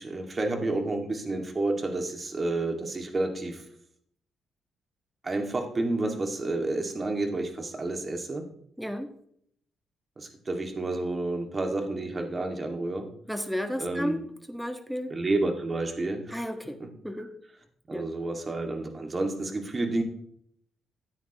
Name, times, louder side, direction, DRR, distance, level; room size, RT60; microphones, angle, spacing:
voice 1, 0.0-3.6 5.2-8.4 10.2-13.1 13.8-14.2 15.1-16.5 16.8-16.9 17.2-17.3 17.9-20.0, right 2 dB, 35° right, 4 dB, 2.1 m, -30 dB
voice 2, 8.8-9.1 13.3-14.2 14.5-15.1 16.3-16.8 17.0-17.3 17.9-18.1, equal, ahead, 7 dB, 1.5 m, -32 dB
14.0 x 9.1 x 3.0 m, 0.68 s
supercardioid pair, 65°, 0 cm